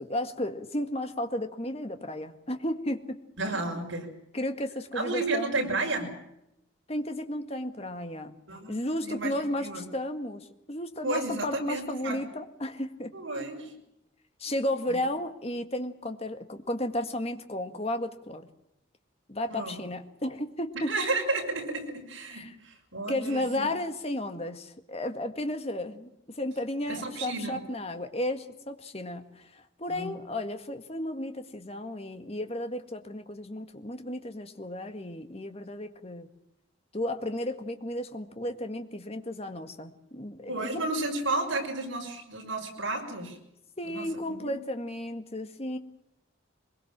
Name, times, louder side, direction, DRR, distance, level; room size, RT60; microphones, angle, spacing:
voice 1, 0.0-3.1 3.7-3.8 4.3-5.6 6.9-8.3 8.7-13.1 14.4-18.5 19.3-20.9 22.3-22.5 23.1-36.3 36.9-40.8 43.8-45.8, left 1 dB, 30° left, 7 dB, 1.8 m, -33 dB
voice 2, 3.4-4.1 4.9-6.1 8.5-9.8 11.0-12.2 13.1-13.7 14.9-15.0 19.5-19.8 20.7-23.7 26.9-27.6 29.9-30.1 40.5-43.4 43.8-44.5, right 2 dB, 70° right, 3 dB, 6.0 m, -32 dB
23.5 x 22.0 x 7.5 m, 0.83 s
head